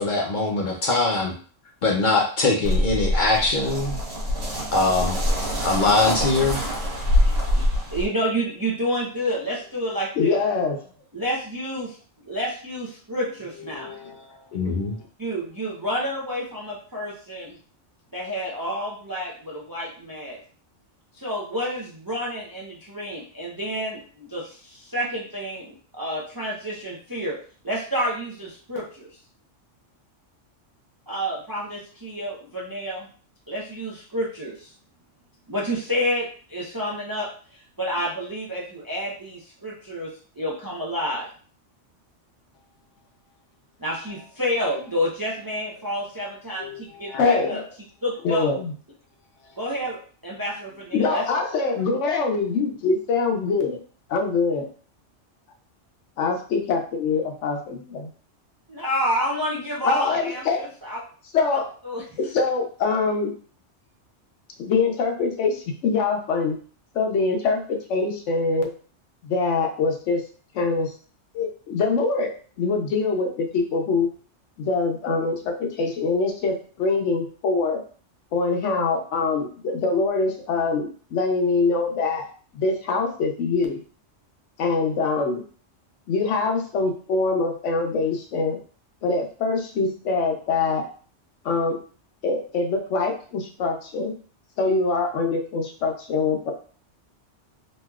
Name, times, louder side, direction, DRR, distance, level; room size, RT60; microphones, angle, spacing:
voice 1, 0.0-1.3 1.8-4.0 4.7-5.2 5.6-6.6 14.5-15.0, left 3 dB, 60° left, 0 dB, 0.5 m, -22 dB
sound 1, 2.6-8.1, left 1 dB, 85° right, 1.4 m, -24 dB
voice 2, 7.2-7.7 7.9-10.4 11.1-12.0 12.2-13.9 15.2-17.6 18.1-20.4 21.1-27.4 27.6-29.1 31.1-33.1 33.5-34.7 35.5-41.3 43.8-47.6 48.0-48.5 49.6-51.2 58.7-61.0 61.8-62.0, equal, 30° right, -4 dB, 0.4 m, -29 dB
voice 3, 10.2-10.8 13.7-14.4 46.6-46.8 47.1-47.6 48.2-48.7 50.9-53.8 54.1-54.7 56.2-58.1 59.8-60.6 61.3-61.7 62.3-63.3 64.6-66.6 66.9-68.7 69.2-70.2 70.5-70.9 71.3-72.3 72.6-74.1 74.6-77.8 78.3-82.3 82.5-83.8 84.6-85.4 86.1-88.6 89.0-90.8 91.4-91.8 92.2-94.1 94.6-96.5, left 4 dB, 75° left, 3 dB, 1.0 m, -24 dB
3.1 x 2.8 x 2.3 m, 0.42 s
omnidirectional pair, 1.2 m